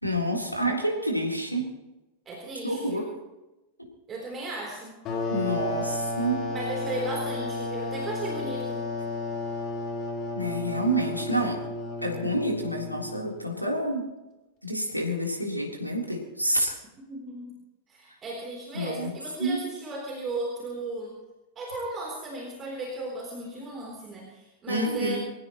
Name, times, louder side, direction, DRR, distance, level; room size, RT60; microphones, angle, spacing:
voice 1, 0.0-1.7 2.6-3.1 5.3-6.5 10.3-11.6 12.0-14.1 14.6-16.8 18.7-19.1 19.4-19.6 24.7-25.2, right 1 dB, 90° left, -1 dB, 3.6 m, -28 dB
voice 2, 2.3-3.1 4.1-5.0 6.5-8.9 17.1-17.5 17.9-21.2 21.6-25.2, right 2 dB, 25° right, 0 dB, 3.5 m, -35 dB
sound 1, 5.0-13.4, left 2 dB, 35° left, 3.5 m, -33 dB
25.5 x 15.5 x 3.1 m, 1.0 s
figure-of-eight pair, 90°, 0 cm